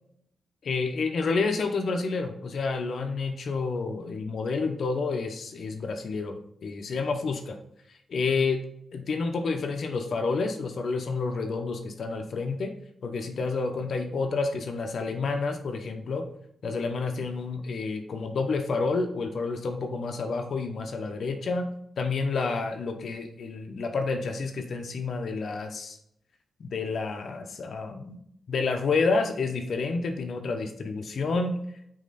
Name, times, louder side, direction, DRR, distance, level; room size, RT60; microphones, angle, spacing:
voice 1, 0.6-6.4 6.6-7.6 8.1-8.6 8.9-12.7 13.0-16.3 16.6-26.0 26.6-28.2 28.5-31.6, left 4 dB, 70° left, 4 dB, 1.0 m, -29 dB
8.9 x 3.1 x 4.2 m, 0.72 s
cardioid pair, 90°, 0 cm